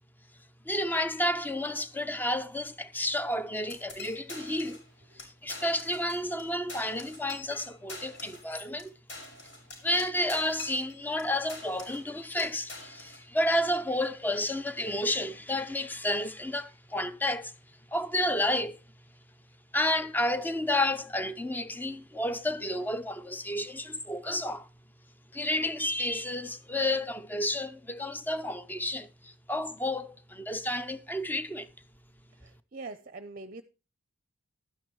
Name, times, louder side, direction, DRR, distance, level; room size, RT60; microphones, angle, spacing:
voice 1, 0.7-4.8 5.2-8.9 9.8-17.5 17.9-18.7 19.7-24.7 25.3-31.7, left 1 dB, 10° left, 0.6 m, -31 dB
sound 1, 3.7-4.9 5.2-5.3 5.5-6.4 6.7-11.2 11.5-12.1 12.4-13.2, left 3 dB, 55° left, 5.8 m, -45 dB
voice 2, 32.4-33.6, right 3 dB, 40° right, 0.6 m, -43 dB
12.0 x 9.8 x 3.1 m
head